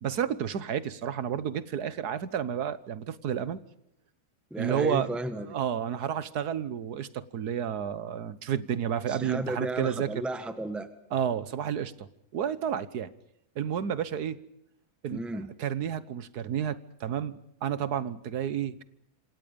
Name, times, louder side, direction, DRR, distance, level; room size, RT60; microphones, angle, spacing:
voice 1, 0.0-3.6 4.6-5.1 5.5-10.2 11.1-12.1 12.3-13.1 13.5-14.4 15.0-15.2 15.6-18.8, right 9 dB, 80° right, 16 dB, 1.7 m, -31 dB
voice 2, 4.5-5.6 9.1-10.9 15.1-15.5, right 1 dB, ahead, 10 dB, 1.5 m, -34 dB
26.5 x 26.5 x 5.3 m, 0.77 s
omnidirectional pair, 1.6 m